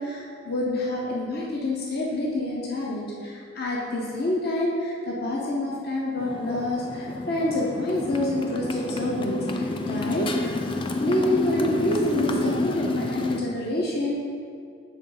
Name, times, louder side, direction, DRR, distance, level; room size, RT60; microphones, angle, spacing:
voice 1, 0.0-10.6 11.0-14.2, left 1 dB, 50° left, -3 dB, 0.7 m, -27 dB
Motorcycle, 6.2-13.4, left 2 dB, 25° left, 0.3 m, -29 dB
7.1 x 3.6 x 3.9 m, 2.3 s
head